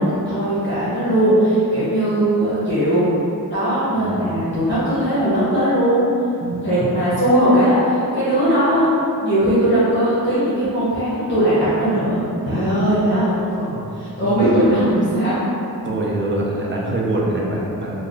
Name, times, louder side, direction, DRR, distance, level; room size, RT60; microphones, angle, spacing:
voice 1, 0.0-3.1 3.5-6.0 6.6-8.9 9.2-13.7 14.0-15.4, right 1 dB, 30° left, -12 dB, 1.2 m, -19 dB
voice 2, 3.9-4.4 6.4-6.9 12.5-12.9 14.1-14.3 15.8-18.1, right 2 dB, 30° right, -3 dB, 0.6 m, -25 dB
3.2 x 2.2 x 3.8 m, 2.7 s
cardioid pair, 75°, 37 cm